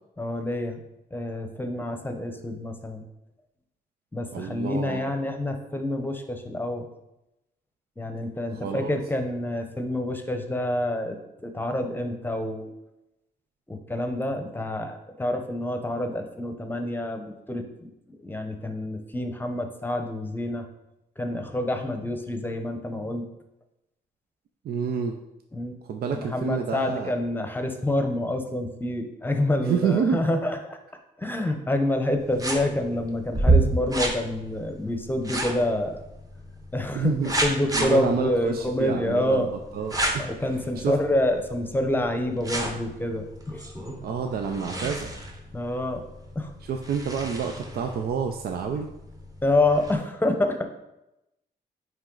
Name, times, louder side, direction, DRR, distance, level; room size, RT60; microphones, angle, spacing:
voice 1, 0.2-0.8 1.1-3.0 4.1-6.9 8.0-11.2 11.4-12.7 13.7-17.9 18.2-20.6 21.2-23.3 25.5-25.8 26.1-30.8 31.2-36.0 36.7-37.1 37.4-39.5 40.2-43.6 45.5-46.0 46.3-46.5 49.4-50.6, left 1 dB, 10° left, 6 dB, 0.8 m, -27 dB
voice 2, 4.3-5.1 8.5-9.0 24.6-25.2 25.8-27.1 29.6-30.3 36.9-37.3 37.7-40.9 44.0-45.1 46.6-48.9, right 6 dB, 65° right, 5 dB, 0.5 m, -29 dB
sound 1, 32.2-49.9, right 2 dB, 20° right, 1.1 m, -31 dB
9.5 x 3.2 x 3.9 m, 0.91 s
cardioid pair, 105°, 17 cm